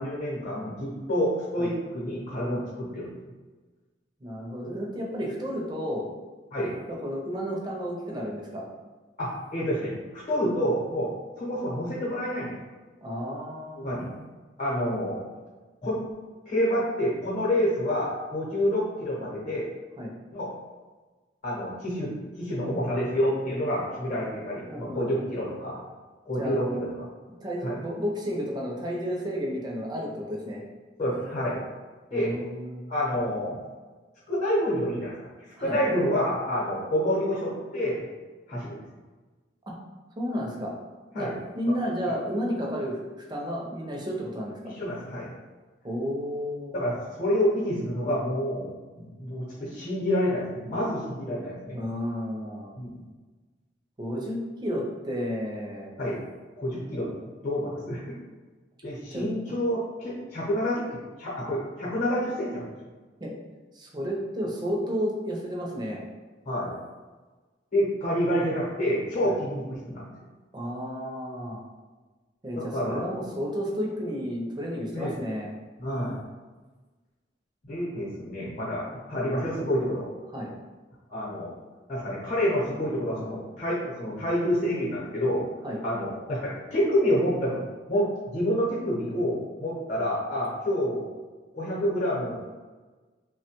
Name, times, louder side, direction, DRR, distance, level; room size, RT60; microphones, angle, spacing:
voice 1, 0.0-3.1 6.5-6.8 9.2-12.5 13.8-14.1 14.6-15.2 15.8-16.0 16.5-19.7 20.3-20.5 21.4-25.8 26.2-26.7 27.0-27.1 27.6-27.7 31.0-31.6 32.1-32.3 32.9-33.6 34.3-35.1 35.6-38.0 38.5-38.8 41.1-41.3 42.1-42.2 44.6-45.3 46.7-48.7 49.0-51.8 52.8-52.9 56.0-56.2 56.6-57.1 57.4-58.2 58.8-60.8 61.2-62.6 66.4-66.8 67.7-70.1 72.6-73.0 74.9-75.1 75.8-76.2 77.6-80.1 81.1-81.5 81.9-85.5 85.8-87.6 87.9-91.1 91.5-92.5, equal, 45° left, -6 dB, 0.8 m, -28 dB
voice 2, 4.2-6.1 6.9-8.7 13.0-14.3 20.0-20.1 24.7-25.1 26.4-26.8 27.4-30.6 32.1-32.9 35.6-35.8 39.7-39.8 40.2-40.7 41.1-41.3 41.6-44.6 45.8-46.8 51.7-52.8 54.0-55.9 59.1-59.5 63.2-63.3 63.7-66.0 69.2-69.3 70.5-71.6 72.4-75.5 80.3-80.5 85.6-85.8, equal, 25° right, -2 dB, 0.5 m, -32 dB
3.1 x 2.2 x 2.9 m, 1.3 s
head